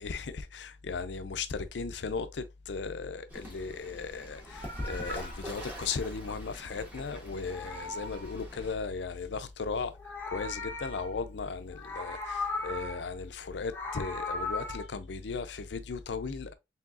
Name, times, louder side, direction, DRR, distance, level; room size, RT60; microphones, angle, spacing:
voice 1, 0.0-16.5, left 4 dB, 75° left, 0.5 m, -36 dB
Fowl / Bird, 3.3-8.7, equal, 10° right, 1.7 m, -44 dB
Meow, 4.3-7.0 7.3-9.0 9.8-11.4 11.7-13.1 13.5-14.8, left 3 dB, 10° left, 0.9 m, -39 dB
sound 1, 5.1-7.6, equal, 90° right, 1.3 m, -50 dB
4.6 x 3.5 x 2.4 m
head